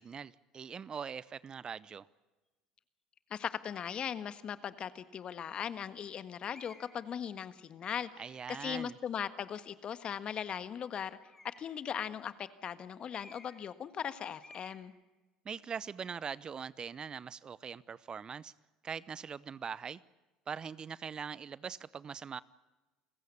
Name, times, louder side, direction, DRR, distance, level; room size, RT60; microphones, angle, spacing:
voice 1, 0.0-2.1 8.2-9.0 15.4-18.5 18.8-20.0 20.5-22.4, right 6 dB, 35° right, 0.7 m, -42 dB
voice 2, 3.3-8.1 8.5-11.2 11.4-14.9, left 8 dB, 45° left, 1.6 m, -39 dB
sound 1, 3.7-4.1 4.9-5.0 6.5-7.1 11.2-11.8 13.1-13.7 14.0-14.1 14.4-14.8, left 2 dB, 15° left, 6.4 m, -56 dB
29.0 x 16.0 x 8.6 m
hypercardioid pair, 70°, 2 cm